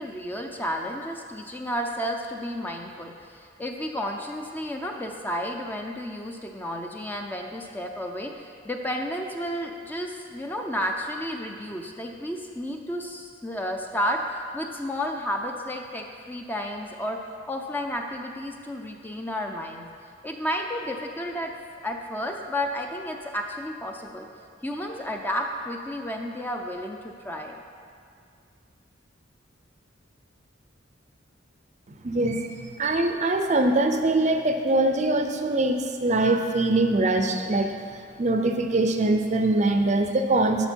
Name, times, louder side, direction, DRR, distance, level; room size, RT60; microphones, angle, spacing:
voice 1, 0.0-17.2 17.5-19.9 20.2-21.5 21.8-24.3 24.6-27.6, equal, 10° left, 2 dB, 0.5 m, -32 dB
voice 2, 32.0-32.5 32.8-37.7 38.2-40.7, right 2 dB, 40° right, 5 dB, 0.6 m, -23 dB
11.5 x 6.5 x 4.5 m, 2.2 s
head